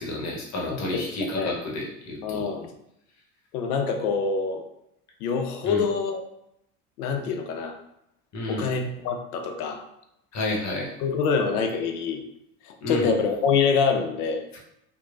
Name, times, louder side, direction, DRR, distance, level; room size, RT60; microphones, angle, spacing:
voice 1, 0.0-2.4 5.6-5.8 8.3-8.7 10.3-10.9 12.8-13.1 14.5-14.6, left 1 dB, 40° left, -2 dB, 0.9 m, -30 dB
voice 2, 0.7-1.6 2.2-2.7 3.5-4.6 5.2-6.2 7.0-7.8 8.5-9.8 11.0-12.2 12.6-14.4, left 5 dB, 75° left, 5 dB, 0.6 m, -26 dB
3.0 x 2.2 x 2.4 m, 0.79 s
hypercardioid pair, 75°, 45 cm